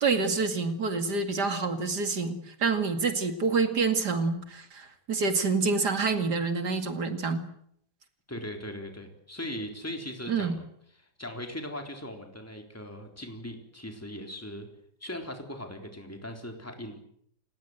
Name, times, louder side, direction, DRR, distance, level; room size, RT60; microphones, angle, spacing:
voice 1, 0.0-7.5 10.3-10.6, right 4 dB, 70° right, 8 dB, 2.9 m, -27 dB
voice 2, 8.3-10.7 11.0-14.7 15.0-17.0, left 1 dB, 10° left, 4 dB, 3.8 m, -39 dB
29.5 x 19.5 x 8.0 m, 0.69 s
omnidirectional pair, 1.9 m